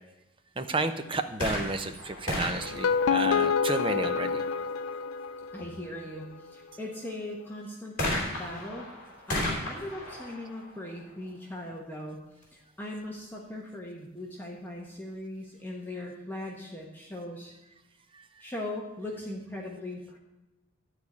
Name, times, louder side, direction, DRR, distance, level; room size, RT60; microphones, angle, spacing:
voice 1, 0.6-4.4 18.1-18.2, right 2 dB, 25° right, 8 dB, 0.6 m, -31 dB
sound 1, 1.3-3.9 8.0-11.6 12.4-12.5, left 1 dB, 40° left, 3.4 m, -35 dB
sound 2, 2.6-5.8, left 6 dB, 80° left, 0.4 m, -27 dB
voice 2, 5.5-8.0 8.3-8.9 9.3-12.2 12.5-17.5 18.4-20.2, left 1 dB, 10° left, -2 dB, 1.2 m, -39 dB
12.0 x 4.8 x 8.4 m, 1.0 s
head